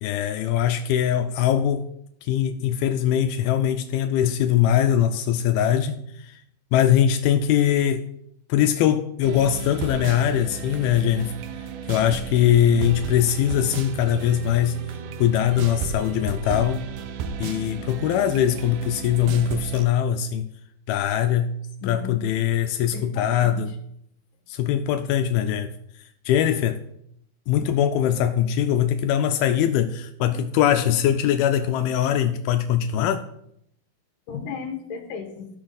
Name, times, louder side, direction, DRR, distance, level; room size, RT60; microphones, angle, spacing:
voice 1, 0.0-1.9 2.2-6.4 6.7-8.1 8.5-11.4 11.9-14.9 15.2-16.9 17.4-20.5 20.9-23.7 24.5-25.7 26.3-26.8 27.5-33.2, left 10 dB, 85° left, 2.4 m, -22 dB
sound 1, 9.2-19.9, right 6 dB, 75° right, 2.1 m, -34 dB
voice 2, 21.8-22.1 22.8-23.8 34.3-35.5, left 6 dB, 65° left, 3.0 m, -35 dB
14.0 x 6.4 x 4.0 m
omnidirectional pair, 4.5 m